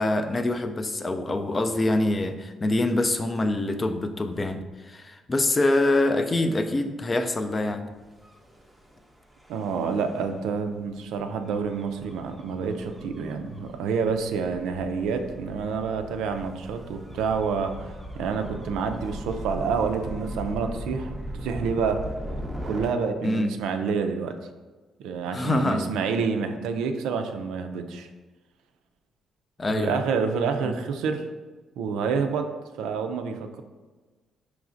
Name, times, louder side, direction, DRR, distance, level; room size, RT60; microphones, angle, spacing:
voice 1, 0.0-7.9 23.2-23.5 25.3-26.0 29.6-30.0, left 2 dB, 30° left, 6 dB, 0.4 m, -25 dB
Gull seagull / Waves surf / Siren, 8.1-22.9, equal, 5° right, 0.7 m, -39 dB
voice 2, 9.5-21.1 21.4-22.0 22.7-24.3 25.0-28.1 29.7-31.2 31.8-32.4 32.8-33.6, right 5 dB, 90° right, 6 dB, 0.3 m, -28 dB
4.9 x 3.1 x 2.5 m, 1.3 s
cardioid pair, 90°, 0 cm